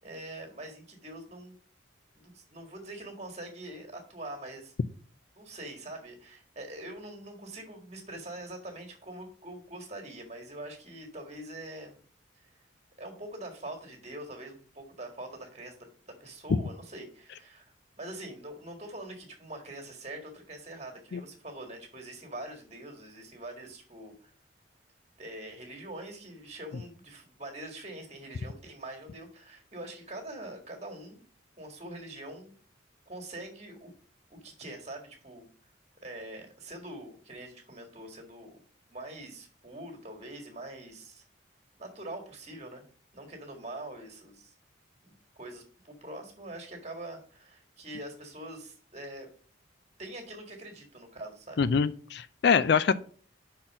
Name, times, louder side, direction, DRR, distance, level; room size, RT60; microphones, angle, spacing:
voice 1, 0.0-1.6 2.1-4.7 5.3-12.0 12.4-12.5 13.0-15.7 16.2-24.3 25.2-31.2 31.6-32.5 33.1-33.9 34.3-35.5 36.0-38.6 38.9-41.2 41.8-42.8 43.1-44.5 45.0-49.3 50.0-51.6, right 1 dB, 35° right, 2 dB, 1.8 m, -44 dB
voice 2, 51.6-52.9, left 6 dB, 55° left, 15 dB, 0.4 m, -24 dB
5.7 x 4.3 x 6.3 m, 0.43 s
head